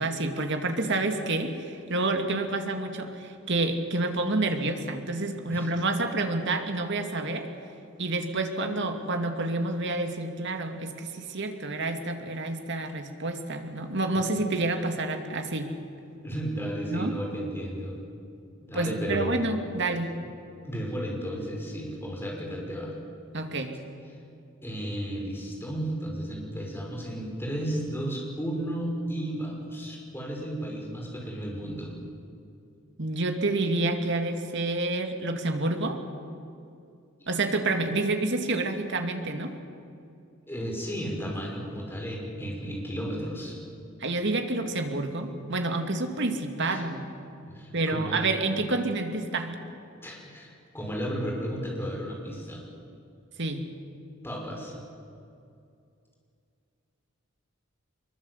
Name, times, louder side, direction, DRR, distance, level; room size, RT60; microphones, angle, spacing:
voice 1, 0.0-7.5 8.0-15.7 16.9-17.1 18.7-20.1 23.3-23.7 33.0-36.0 37.3-39.5 44.0-47.1 47.7-49.6 53.4-53.6, right 2 dB, 60° right, 5 dB, 2.4 m, -28 dB
voice 2, 16.2-18.0 18.6-19.4 20.6-22.9 24.6-31.9 40.5-43.6 46.6-46.8 47.5-48.2 50.0-52.6 54.2-54.8, equal, 10° left, -2 dB, 6.0 m, -33 dB
24.5 x 22.5 x 8.1 m, 2.5 s
head